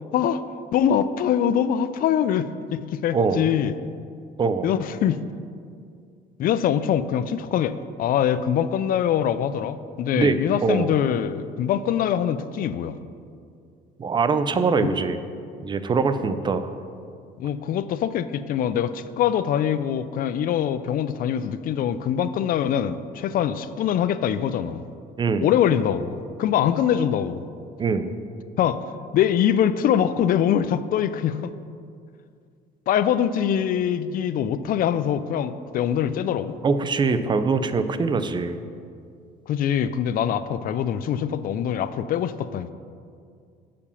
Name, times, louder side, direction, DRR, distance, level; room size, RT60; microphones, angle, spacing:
voice 1, 0.7-3.7 4.6-5.2 6.4-7.7 8.0-13.0 14.8-15.0 17.4-24.8 25.4-27.4 28.6-28.8 29.1-31.5 32.9-36.6 39.5-42.7, left 9 dB, 55° left, 13 dB, 0.4 m, -23 dB
voice 2, 3.1-3.4 4.4-4.7 10.2-11.0 14.0-15.2 15.6-16.7 25.2-25.5 27.8-28.1 36.6-38.6, right 4 dB, 25° right, 10 dB, 0.5 m, -23 dB
6.8 x 5.1 x 6.9 m, 2.3 s
cardioid pair, 110°, 17 cm